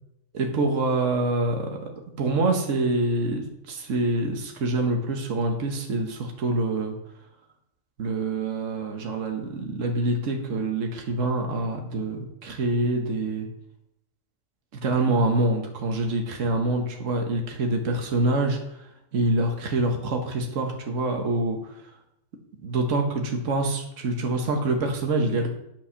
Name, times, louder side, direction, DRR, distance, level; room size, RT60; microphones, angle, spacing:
voice 1, 0.3-1.9 2.2-6.9 8.0-13.5 14.8-18.9 19.1-21.9 22.6-25.5, right 2 dB, 70° right, 2 dB, 1.5 m, -26 dB
8.6 x 7.1 x 5.7 m, 0.80 s
omnidirectional pair, 1.3 m